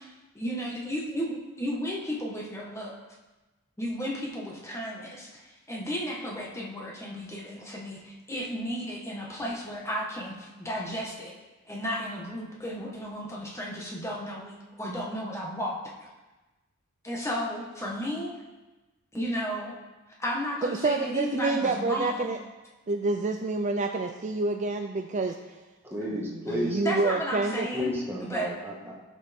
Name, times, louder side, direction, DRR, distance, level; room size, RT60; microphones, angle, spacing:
voice 1, 0.0-3.0 3.8-11.3 11.7-15.7 16.0-16.1 17.0-18.3 19.1-19.7 20.2-22.3 26.5-27.9 28.2-28.5 28.8-28.9, equal, 15° left, -3 dB, 1.6 m, -34 dB
voice 2, 20.6-22.4 22.9-25.4 26.5-27.7, right 3 dB, 35° right, 4 dB, 0.5 m, -28 dB
voice 3, 25.9-26.8 27.7-28.9, equal, 10° right, -3 dB, 1.8 m, -32 dB
16.5 x 6.1 x 3.7 m, 1.1 s
head